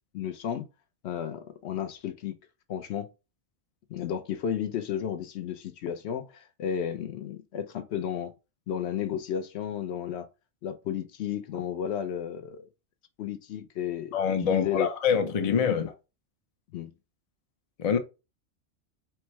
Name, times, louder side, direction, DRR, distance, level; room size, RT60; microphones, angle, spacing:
voice 1, 0.1-0.7 1.0-2.4 2.7-3.1 3.9-8.3 8.7-10.3 10.6-12.7 13.2-14.2 14.4-14.9 15.4-15.8 16.7-16.9, left 9 dB, 65° left, 0.8 m, -33 dB
voice 2, 14.1-15.9 17.8-18.0, left 7 dB, 45° left, 0.4 m, -25 dB
4.5 x 2.0 x 4.4 m
omnidirectional pair, 1.3 m